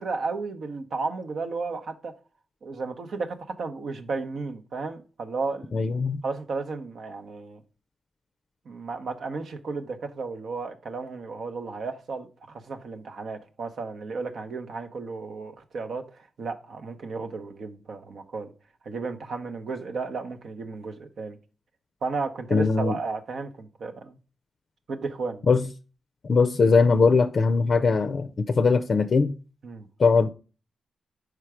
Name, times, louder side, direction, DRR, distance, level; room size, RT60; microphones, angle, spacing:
voice 1, 0.0-2.1 2.6-5.8 6.2-7.6 8.6-18.5 18.8-21.4 22.0-24.2 24.9-25.5 29.6-29.9, right 4 dB, 70° right, 0.8 m, -33 dB
voice 2, 5.7-6.2 22.5-22.9 25.5-25.6 26.2-29.3 30.0-30.3, left 4 dB, 50° left, 0.4 m, -20 dB
4.8 x 4.5 x 4.8 m
cardioid pair, 75°, 0 cm